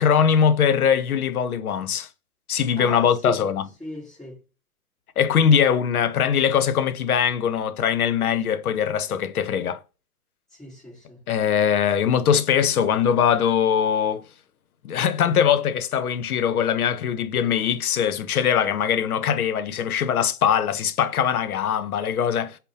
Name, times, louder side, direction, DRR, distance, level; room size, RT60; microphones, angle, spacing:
voice 1, 0.0-2.1 2.5-3.7 5.2-9.8 11.3-14.2 14.8-22.6, left 8 dB, 75° left, 0.7 m, -21 dB
voice 2, 2.7-3.4 3.8-4.4 10.5-11.2, equal, ahead, 1.2 m, -37 dB
5.4 x 2.2 x 2.6 m
hypercardioid pair, 140°, 44 cm